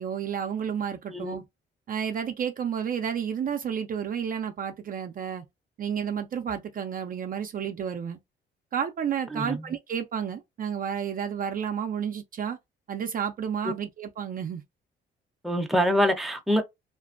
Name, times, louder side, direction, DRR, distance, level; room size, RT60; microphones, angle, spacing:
voice 1, 0.0-1.4 1.9-5.4 5.8-8.2 8.7-12.6 12.9-14.6, right 8 dB, 45° right, 0.4 m, -31 dB
voice 2, 15.4-16.6, equal, ahead, 0.6 m, -24 dB
2.5 x 2.1 x 2.4 m
cardioid pair, 90°, 20 cm